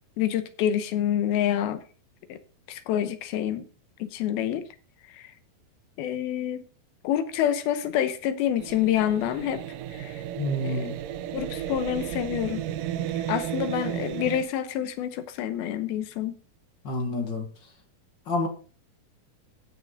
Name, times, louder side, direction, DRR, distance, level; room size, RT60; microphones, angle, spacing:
voice 1, 0.2-1.8 2.3-2.4 2.7-3.7 4.0-4.6 5.1-5.3 6.0-6.6 7.0-9.6 9.9-10.2 10.6-10.9 11.3-12.6 13.3-16.4, left 10 dB, 75° left, 2.8 m, -27 dB
sound 1, 8.6-14.4, right 11 dB, 75° right, 2.1 m, -33 dB
voice 2, 10.4-10.9 16.8-17.5 18.3-18.5, left 1 dB, 50° left, 1.4 m, -28 dB
16.0 x 6.3 x 3.9 m
omnidirectional pair, 4.5 m